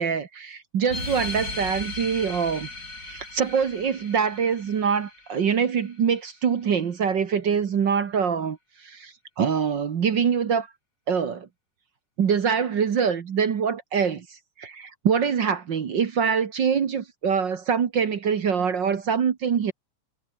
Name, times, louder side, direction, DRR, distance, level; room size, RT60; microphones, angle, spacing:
voice 1, 0.0-2.7 3.0-8.6 8.8-10.7 11.1-11.5 12.2-19.7, right 6 dB, 50° right, 1.5 m, -24 dB
sound 1, 0.9-5.9, left 3 dB, 30° left, 5.4 m, -37 dB
omnidirectional pair, 3.6 m